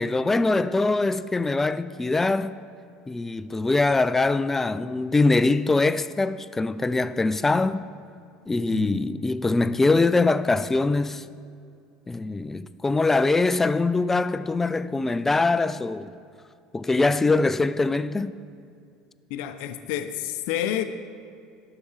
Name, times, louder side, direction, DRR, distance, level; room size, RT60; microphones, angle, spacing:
voice 1, 0.0-2.5 3.1-7.9 8.5-11.2 12.1-16.1 16.7-18.3, left 3 dB, 15° left, 0.3 m, -23 dB
voice 2, 8.7-9.0 19.3-20.8, left 11 dB, 65° left, 0.5 m, -29 dB
12.0 x 4.9 x 4.9 m
hypercardioid pair, 75°, 2 cm